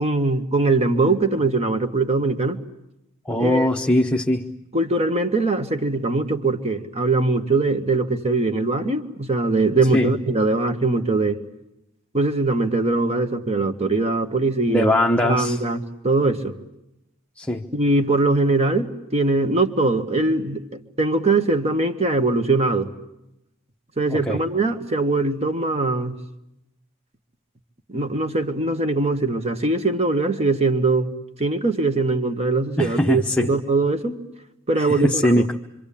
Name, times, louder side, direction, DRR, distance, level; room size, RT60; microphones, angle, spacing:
voice 1, 0.0-2.6 3.4-3.7 4.7-11.4 12.1-14.9 15.2-16.5 17.7-20.6 21.0-22.9 24.0-26.1 27.9-31.1 31.4-34.2 34.7-35.5, right 3 dB, 30° right, 1.9 m, -21 dB
voice 2, 3.3-4.5 9.9-10.2 14.7-15.6 17.4-17.7 24.1-24.4 32.8-33.5 34.7-35.5, left 1 dB, 5° left, 1.0 m, -21 dB
26.5 x 25.5 x 8.7 m
head